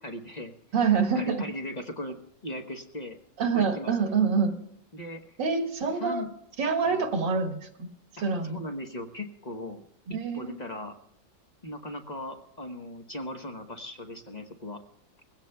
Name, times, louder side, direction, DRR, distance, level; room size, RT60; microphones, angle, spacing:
voice 1, 0.0-0.5 1.1-2.2 2.4-3.2 3.5-4.1 4.9-5.2 6.0-6.3 6.8-7.0 8.4-10.9 11.6-14.8, left 1 dB, 30° left, 4 dB, 0.9 m, -38 dB
voice 2, 0.7-1.4 3.4-4.6 5.4-6.2 6.6-7.9 8.2-8.6 10.1-10.5, right 5 dB, 70° right, 3 dB, 2.2 m, -26 dB
21.5 x 16.5 x 2.3 m, 0.74 s
omnidirectional pair, 2.1 m